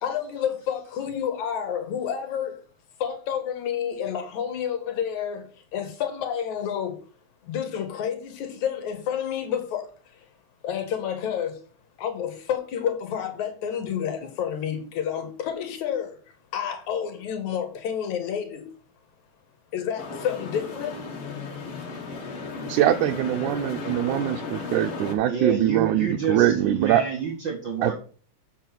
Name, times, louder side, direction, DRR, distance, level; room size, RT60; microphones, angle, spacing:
voice 1, 0.0-2.6 3.0-5.4 5.7-7.0 7.4-9.9 10.6-11.6 12.0-16.2 16.5-18.7 19.7-21.0, left 8 dB, 75° left, 2.6 m, -29 dB
sound 1, 20.0-25.1, left 4 dB, 50° left, 2.2 m, -35 dB
voice 2, 22.7-27.0 27.8-27.9, right 12 dB, 85° right, 2.1 m, -23 dB
voice 3, 25.3-27.9, right 6 dB, 50° right, 1.6 m, -28 dB
7.4 x 5.3 x 5.8 m
omnidirectional pair, 3.5 m